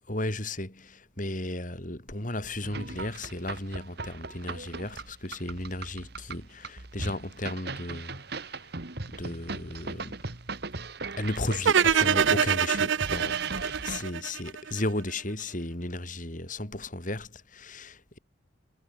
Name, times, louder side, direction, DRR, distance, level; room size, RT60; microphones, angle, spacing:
voice 1, 0.1-8.7 9.1-10.2 11.2-18.2, left 1 dB, 40° left, 3.8 m, -35 dB
sound 1, 2.6-14.0, right 3 dB, 55° right, 1.8 m, -38 dB
sound 2, 11.6-14.8, right 7 dB, 75° right, 0.6 m, -24 dB
head